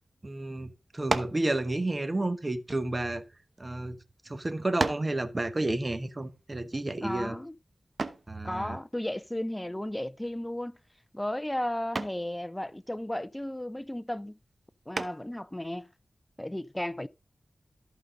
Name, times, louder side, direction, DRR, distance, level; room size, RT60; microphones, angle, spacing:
voice 1, 0.2-3.2 3.6-4.0 4.3-7.4 8.3-8.8, right 2 dB, 35° right, 1.2 m, -31 dB
sound 1, 1.1-1.5 2.4-3.6 4.2-4.3 4.8-5.2 8.0-8.3 10.2-10.6 11.0-11.3 11.9-12.3 14.9-15.4, right 3 dB, 55° right, 0.9 m, -33 dB
voice 2, 7.0-7.5 8.4-10.8 11.1-14.4 14.9-15.9 16.4-17.1, left 1 dB, 15° left, 0.5 m, -34 dB
14.0 x 5.3 x 3.8 m
wide cardioid pair, 75°, 0 cm